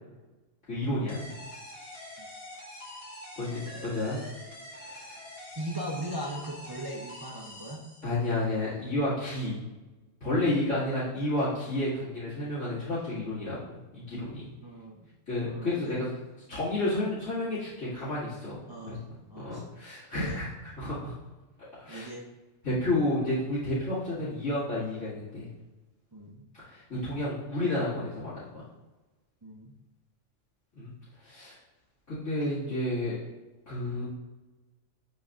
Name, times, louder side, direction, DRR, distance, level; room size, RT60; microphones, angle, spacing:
voice 1, 0.7-1.3 3.4-4.2 4.7-5.2 8.0-9.6 10.2-13.6 13.9-14.5 15.3-16.1 16.5-19.0 19.3-20.5 20.8-21.1 21.8-22.1 22.6-25.5 26.5-28.4 30.8-30.9 31.2-31.6 32.1-33.2 33.7-34.1, left 1 dB, 80° left, -14 dB, 2.5 m, -31 dB
sound 1, 1.1-8.4, left 1 dB, 50° left, 1.6 m, -45 dB
voice 2, 5.6-7.8 14.6-15.1 15.4-15.9 18.7-19.0 19.3-19.7 20.1-20.4 21.9-22.3 26.1-26.4 29.4-29.7, right 1 dB, 25° right, -2 dB, 0.5 m, -39 dB
9.3 x 4.0 x 2.5 m, 1.1 s
omnidirectional pair, 1.3 m